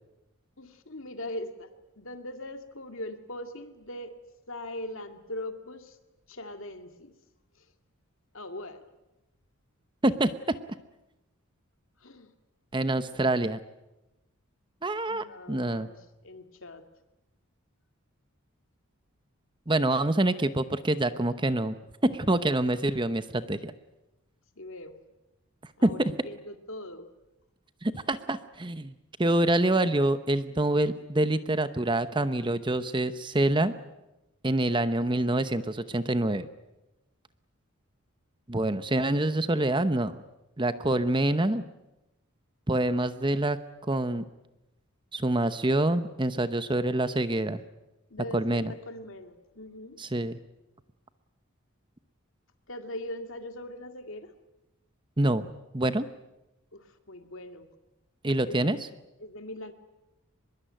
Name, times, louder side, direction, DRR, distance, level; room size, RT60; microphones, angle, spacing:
voice 1, 0.6-4.2 4.5-6.0 6.3-7.1 8.3-8.8 12.0-12.3 13.1-13.2 15.1-16.8 24.6-25.0 25.8-27.1 48.1-50.2 52.7-54.3 56.7-57.7 58.4-58.8 59.2-59.7, left 1 dB, 65° left, 7 dB, 2.2 m, -41 dB
voice 2, 10.0-10.5 12.7-13.6 14.8-15.9 19.7-21.7 22.0-23.7 25.8-26.1 27.8-28.9 29.2-33.7 34.4-36.5 38.5-40.2 40.6-41.6 42.7-43.6 43.9-44.2 45.1-47.6 48.3-48.7 50.0-50.4 55.2-55.5 55.7-56.1 58.2-58.9, right 1 dB, 20° right, 12 dB, 0.9 m, -26 dB
24.0 x 22.0 x 9.1 m, 0.97 s
head